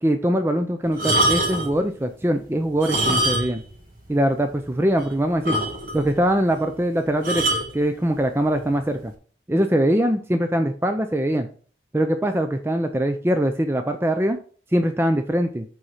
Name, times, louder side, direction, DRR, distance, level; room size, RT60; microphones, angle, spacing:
voice 1, 0.0-3.6 4.1-5.6 5.9-9.1 9.5-11.5 11.9-14.4 14.7-15.6, right 1 dB, 10° right, 6 dB, 0.5 m, -22 dB
sound 1, 0.9-1.8 2.7-3.7 4.0-4.1 4.6-4.7 5.0-5.1 5.4-6.1 7.2-7.7 8.6-8.8, right 1 dB, 45° right, 1.9 m, -23 dB
8.0 x 4.2 x 5.7 m, 0.42 s
head